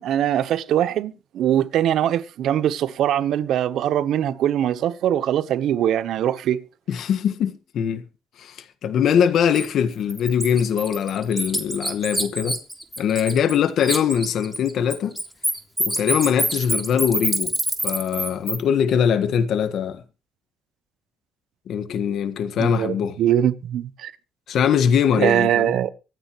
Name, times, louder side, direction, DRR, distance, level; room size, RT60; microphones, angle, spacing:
voice 1, 0.0-6.6 22.6-24.1 25.2-25.9, right 11 dB, 80° right, 1.0 m, -22 dB
voice 2, 6.9-8.0 8.4-12.6 13.0-15.2 15.8-17.5 17.8-20.0 21.7-23.1 24.5-25.7, left 8 dB, 70° left, 1.5 m, -22 dB
Bird, 9.5-9.7 10.1-13.6 13.8-18.6, right 1 dB, 5° right, 3.3 m, -26 dB
25.0 x 9.3 x 3.1 m
cardioid pair, 90°, 0 cm